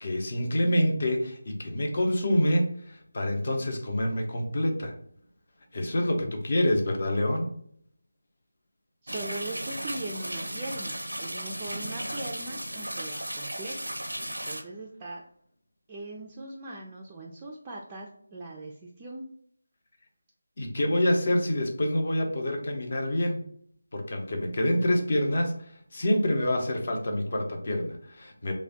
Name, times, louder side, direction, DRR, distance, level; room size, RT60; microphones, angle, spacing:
voice 1, 0.0-4.9 5.7-7.5 20.6-23.4 23.9-25.5 25.9-28.5, left 1 dB, 45° left, 3 dB, 0.6 m, -27 dB
voice 2, 9.0-13.7 14.4-15.2 15.9-19.3, right 2 dB, 15° right, -3 dB, 0.3 m, -40 dB
sound 1, 9.1-14.6, right 1 dB, 85° right, 0.5 m, -35 dB
3.2 x 2.1 x 3.8 m, 0.63 s
figure-of-eight pair, 160°, 0 cm